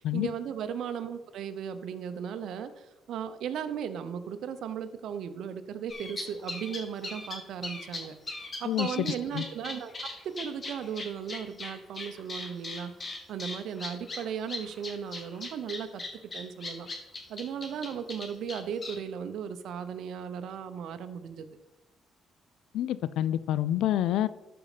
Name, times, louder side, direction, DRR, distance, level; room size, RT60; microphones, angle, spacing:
voice 1, 0.0-8.1 8.6-16.0 16.3-16.9 17.3-21.5, right 8 dB, 75° right, 10 dB, 0.8 m, -36 dB
sound 1, 5.9-19.0, left 2 dB, 35° left, 2.6 m, -38 dB
voice 2, 8.7-9.4 22.7-24.3, left 12 dB, 85° left, 17 dB, 0.4 m, -28 dB
12.5 x 5.4 x 5.0 m, 1.1 s
cardioid pair, 90°, 0 cm